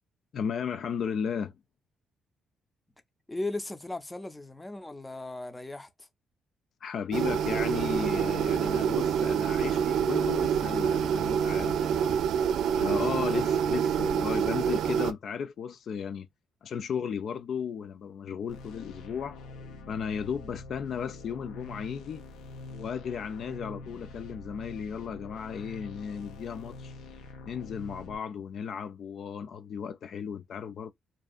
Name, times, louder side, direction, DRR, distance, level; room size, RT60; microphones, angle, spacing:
voice 1, 0.3-1.5 6.8-12.2 12.7-16.3 16.6-19.4 19.9-22.2 22.7-26.9 27.4-30.9, left 7 dB, 60° left, 0.3 m, -35 dB
voice 2, 3.3-6.1 13.0-13.6, left 2 dB, 15° left, 0.5 m, -38 dB
sound 1, 7.1-15.1, right 8 dB, 75° right, 0.3 m, -27 dB
sound 2, 18.5-28.2, left 2 dB, 90° left, 0.7 m, -45 dB
2.6 x 2.3 x 2.2 m
cardioid pair, 90°, 0 cm